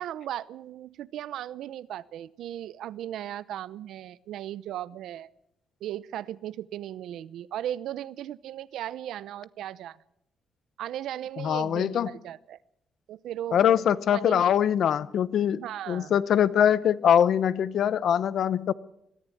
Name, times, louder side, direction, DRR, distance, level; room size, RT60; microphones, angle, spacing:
voice 1, 0.0-5.3 5.8-10.0 10.8-12.6 13.1-13.6 14.1-14.5 15.6-16.2, right 11 dB, 90° right, 0.7 m, -37 dB
voice 2, 11.4-12.1 13.5-15.6 15.9-18.7, left 9 dB, 60° left, 0.7 m, -23 dB
22.0 x 14.5 x 8.6 m
cardioid pair, 150°, 0 cm